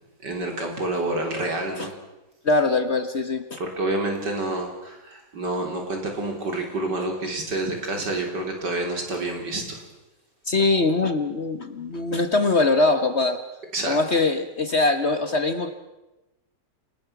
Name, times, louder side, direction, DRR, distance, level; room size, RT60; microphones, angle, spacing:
voice 1, 0.2-1.9 3.6-9.8 13.7-14.0, right 2 dB, 70° right, 2 dB, 4.3 m, -28 dB
voice 2, 2.4-3.6 10.5-13.4 13.9-15.7, left 3 dB, 40° left, 9 dB, 1.3 m, -22 dB
29.0 x 19.0 x 6.0 m, 1.0 s
omnidirectional pair, 1.9 m